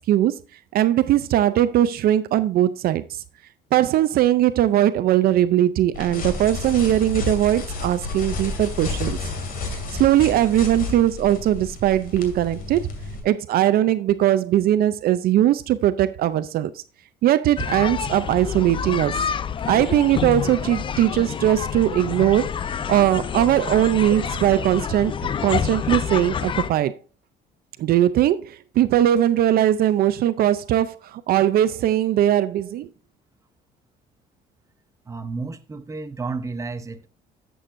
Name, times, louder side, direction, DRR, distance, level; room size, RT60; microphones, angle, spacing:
voice 1, 0.7-3.2 3.7-9.2 9.7-12.8 13.2-16.8 17.2-19.3 19.7-22.5 22.9-25.1 25.4-26.9 27.8-32.9, right 12 dB, 65° right, 0.5 m, -20 dB
sound 1, 5.9-13.2, left 3 dB, 60° left, 2.6 m, -31 dB
sound 2, 17.6-26.7, left 7 dB, 30° left, 0.4 m, -28 dB
voice 2, 35.1-37.1, right 4 dB, 20° right, 0.8 m, -31 dB
11.0 x 7.7 x 2.6 m
cardioid pair, 110°, 17 cm